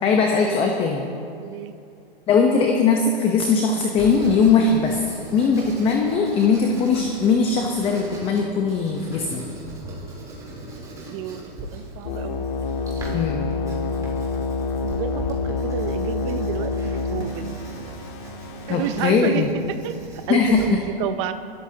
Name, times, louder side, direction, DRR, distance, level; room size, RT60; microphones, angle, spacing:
voice 1, 0.0-1.1 2.3-5.0 5.3-9.4 13.1-13.5 18.7-19.5 20.3-20.8, left 5 dB, 20° left, 2 dB, 0.9 m, -20 dB
voice 2, 1.4-1.7 11.0-11.4 11.7-12.3 13.0-13.2 14.8-17.6 18.7-19.4 19.8-21.3, right 10 dB, 30° right, 10 dB, 0.6 m, -30 dB
Writing, 4.0-20.6, right 1 dB, 10° right, 3.6 m, -39 dB
sound 1, 12.0-19.1, left 4 dB, 55° left, 1.7 m, -28 dB
27.5 x 13.0 x 2.9 m, 2.5 s
hypercardioid pair, 145°, 30 cm